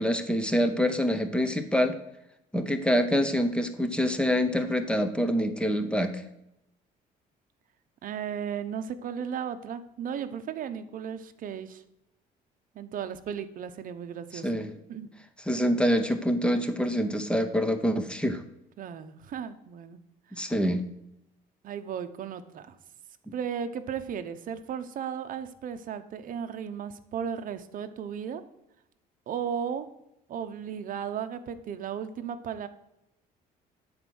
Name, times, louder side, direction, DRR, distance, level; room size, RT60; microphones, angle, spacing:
voice 1, 0.0-2.0 2.5-6.2 14.4-14.7 15.5-18.4 20.3-20.8, equal, 5° left, 8 dB, 0.8 m, -26 dB
voice 2, 8.0-11.8 12.7-14.6 14.9-15.1 18.8-20.0 20.3-20.5 21.6-22.8 23.3-28.4 29.3-29.9 30.3-32.7, right 8 dB, 55° right, 10 dB, 0.8 m, -35 dB
8.8 x 4.3 x 6.2 m, 0.85 s
cardioid pair, 110°, 17 cm